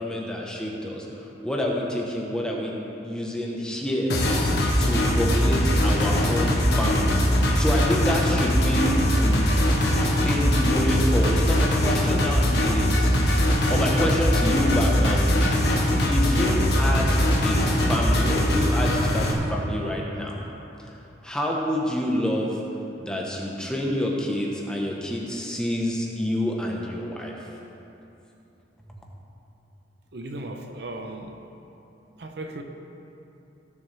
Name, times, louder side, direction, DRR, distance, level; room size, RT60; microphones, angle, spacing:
voice 1, 0.0-2.7 3.0-4.2 4.8-9.5 10.2-13.1 13.7-15.6 16.1-17.1 17.4-20.4 20.8-20.9 21.2-22.6 23.0-27.3, equal, 5° left, -2 dB, 1.1 m, -28 dB
sound 1, 4.1-19.3, equal, 60° left, 1.3 m, -21 dB
voice 2, 30.1-31.3 32.2-32.6, right 2 dB, 60° right, 4 dB, 0.7 m, -36 dB
17.0 x 7.0 x 3.4 m, 2.9 s
head